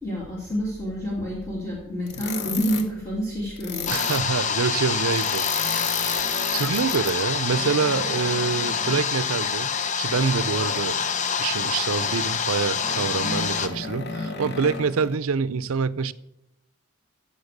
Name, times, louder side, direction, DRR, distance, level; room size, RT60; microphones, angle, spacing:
voice 1, 0.0-3.9, equal, 15° left, 2.7 m, -28 dB
sound 1, 2.1-2.9 3.6-4.3 5.1-9.0 10.1-11.0 12.0-12.3 12.7-15.2, left 5 dB, 55° left, 1.2 m, -33 dB
sound 2, 3.9-13.7, left 6 dB, 35° left, 0.7 m, -26 dB
voice 2, 3.9-6.2 6.5-9.7 10.0-11.0 11.4-16.1, right 5 dB, 85° right, 0.6 m, -26 dB
15.0 x 7.2 x 6.6 m
head